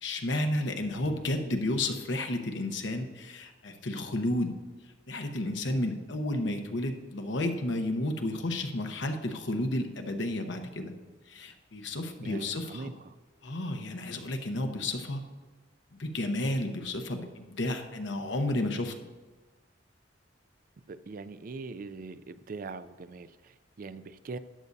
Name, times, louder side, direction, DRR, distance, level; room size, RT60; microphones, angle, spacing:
voice 1, 0.0-4.5 5.1-10.9 11.3-12.9 13.4-15.2 16.0-18.9, left 1 dB, 85° left, 5 dB, 1.0 m, -32 dB
voice 2, 12.2-13.1 20.9-24.4, right 4 dB, 50° right, 13 dB, 0.4 m, -42 dB
13.5 x 9.5 x 2.7 m, 1.3 s
head